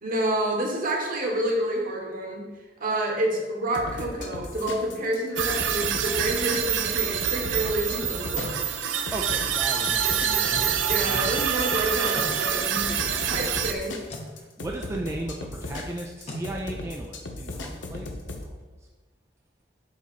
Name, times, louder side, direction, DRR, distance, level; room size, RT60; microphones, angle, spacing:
voice 1, 0.0-2.4 2.8-8.6 10.9-14.0, right 1 dB, 50° right, 0 dB, 1.4 m, -28 dB
sound 1, 3.7-18.4, left 2 dB, 85° left, 0.8 m, -37 dB
sound 2, 5.4-13.7, right 8 dB, 85° right, 0.6 m, -26 dB
sound 3, 8.3-8.6 10.5-10.8 12.1-12.4 14.1-14.3 16.3-16.5, left 1 dB, 35° left, 0.8 m, -37 dB
voice 2, 9.1-11.4 14.3-18.5, right 1 dB, 15° right, -1 dB, 0.4 m, -36 dB
7.1 x 3.0 x 5.7 m, 1.2 s
head